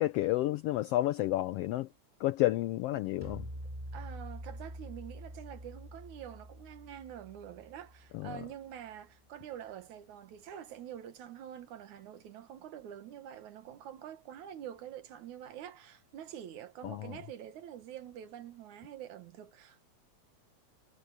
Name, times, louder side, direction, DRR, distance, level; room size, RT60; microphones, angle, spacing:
voice 1, 0.0-1.9 2.2-3.5 8.1-8.4 16.8-17.1, left 16 dB, 90° left, 1.3 m, -30 dB
sound 1, 3.2-8.6, equal, 10° right, 7.5 m, -46 dB
voice 2, 3.9-19.8, right 10 dB, 85° right, 2.9 m, -46 dB
omnidirectional pair, 3.3 m